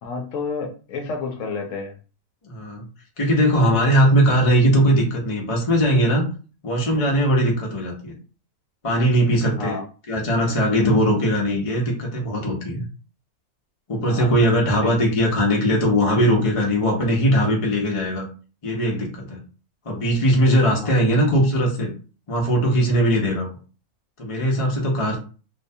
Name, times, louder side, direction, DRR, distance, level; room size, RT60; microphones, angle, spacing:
voice 1, 0.0-1.9 9.6-9.8 14.1-14.3 20.8-20.9, left 4 dB, 70° left, 3 dB, 0.8 m, -30 dB
voice 2, 2.4-2.8 3.2-6.3 6.6-8.1 8.8-9.8 10.1-12.8 13.9-18.3 18.6-19.4 19.9-21.9 22.3-23.5 24.2-25.2, equal, 40° left, -1 dB, 0.4 m, -20 dB
2.7 x 2.1 x 2.6 m, 0.36 s
omnidirectional pair, 1.6 m